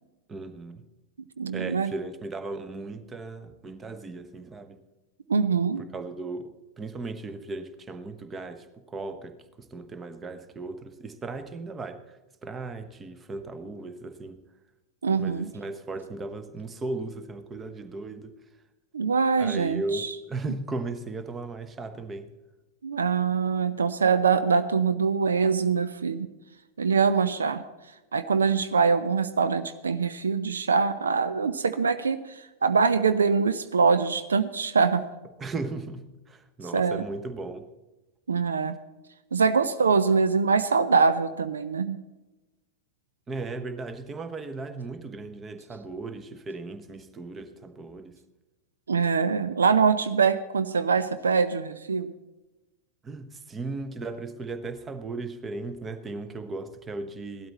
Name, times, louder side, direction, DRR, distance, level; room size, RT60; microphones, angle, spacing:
voice 1, 0.3-0.9 1.5-4.8 5.9-12.2 12.4-14.4 15.2-18.3 19.4-22.3 35.4-37.7 43.3-48.2 53.0-57.5, right 3 dB, 20° right, 10 dB, 1.1 m, -36 dB
voice 2, 1.4-1.9 5.3-5.8 15.0-15.5 18.9-20.1 22.8-26.3 26.8-27.6 28.1-35.0 36.7-37.0 38.3-38.8 39.3-42.0 48.9-52.1, right 5 dB, 70° right, 12 dB, 0.6 m, -24 dB
17.0 x 12.5 x 4.1 m, 1.1 s
figure-of-eight pair, 90°, 0 cm